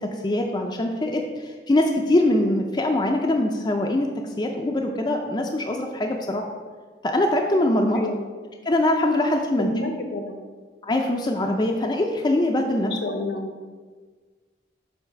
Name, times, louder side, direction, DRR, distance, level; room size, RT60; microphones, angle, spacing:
voice 1, 0.0-4.1 4.4-6.5 7.0-8.0 8.7-9.7 10.8-12.9, left 1 dB, 25° left, 2 dB, 0.4 m, -23 dB
voice 2, 7.9-8.3 9.6-10.4 12.8-13.5, left 2 dB, 65° left, 5 dB, 0.8 m, -29 dB
7.9 x 2.6 x 5.7 m, 1.5 s
head